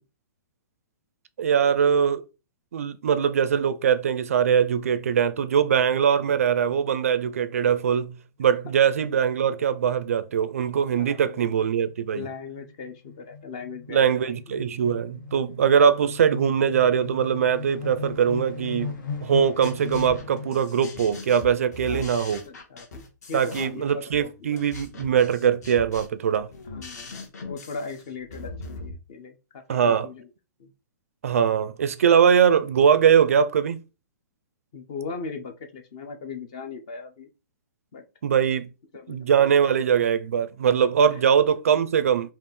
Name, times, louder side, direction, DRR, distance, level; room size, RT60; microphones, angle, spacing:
voice 1, 1.4-2.2 2.7-12.3 13.9-19.0 19.2-22.4 23.3-26.5 29.7-30.1 31.2-33.8 38.2-38.7 39.1-42.3, right 7 dB, 45° right, 0.4 m, -22 dB
voice 2, 11.0-11.5 12.1-14.6 21.9-22.2 22.4-24.6 26.7-30.3 30.6-30.7 34.7-37.3 37.9-38.0 38.9-39.4 41.1-41.2, left 4 dB, 20° left, 0.4 m, -39 dB
sound 1, 11.3-20.8, left 5 dB, 75° left, 1.4 m, -38 dB
sound 2, 19.3-28.9, left 3 dB, 55° left, 1.4 m, -41 dB
5.3 x 2.4 x 3.1 m
hypercardioid pair, 180°, 10 cm